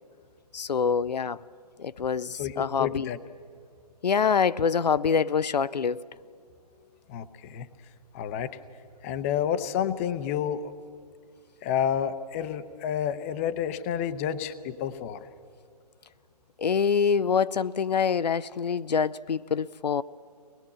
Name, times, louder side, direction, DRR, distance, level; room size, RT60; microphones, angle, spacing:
voice 1, 0.5-1.4 1.8-3.1 4.0-6.0 16.6-20.0, left 6 dB, 75° left, 0.5 m, -25 dB
voice 2, 2.4-3.2 7.1-7.7 8.1-8.5 9.0-10.7 11.6-15.3, left 9 dB, 20° left, 0.6 m, -30 dB
23.5 x 20.0 x 8.6 m
figure-of-eight pair, 145°, 21 cm